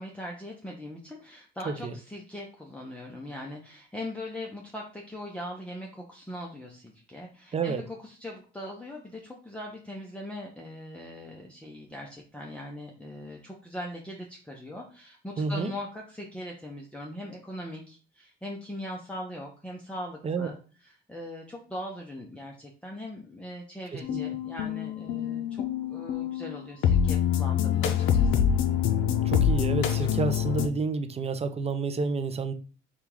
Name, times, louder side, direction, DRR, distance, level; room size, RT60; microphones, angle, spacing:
voice 1, 0.0-20.6 20.8-25.6 25.9-28.4, left 1 dB, 5° left, 0.7 m, -40 dB
voice 2, 7.5-7.8 15.4-15.7 20.2-20.5 23.9-24.2 29.2-32.5, right 4 dB, 30° right, 0.5 m, -29 dB
sound 1, 24.0-30.7, left 8 dB, 85° left, 0.5 m, -25 dB
3.5 x 2.4 x 4.5 m
cardioid pair, 90°, 20 cm